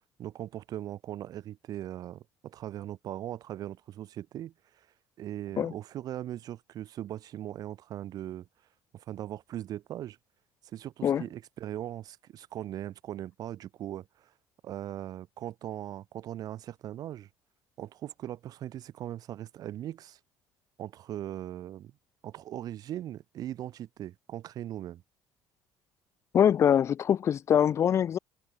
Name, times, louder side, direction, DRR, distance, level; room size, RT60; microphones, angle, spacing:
voice 1, 0.2-4.9 5.2-8.5 8.9-10.2 10.7-14.3 14.6-17.3 17.8-20.2 20.8-21.9 22.2-25.0, right 12 dB, 60° right, 4.1 m, -39 dB
voice 2, 26.3-28.2, left 9 dB, 40° left, 0.5 m, -23 dB
cardioid pair, 110°, 7 cm